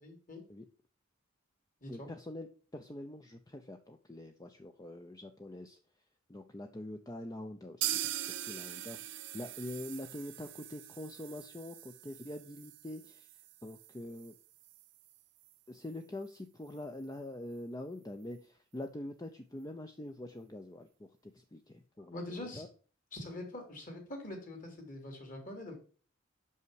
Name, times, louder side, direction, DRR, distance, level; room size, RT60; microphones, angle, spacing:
voice 1, 0.0-0.4 1.8-2.1 22.0-22.6 23.1-25.7, left 1 dB, 45° left, 3 dB, 2.6 m, -44 dB
voice 2, 1.9-5.8 6.3-14.3 15.7-22.7, left 1 dB, 20° left, 6 dB, 0.5 m, -45 dB
sound 1, 7.8-15.5 15.8-15.9 16.2-16.3 16.8-16.9, right 13 dB, 65° right, 0.6 m, -42 dB
6.1 x 5.6 x 4.6 m, 0.40 s
head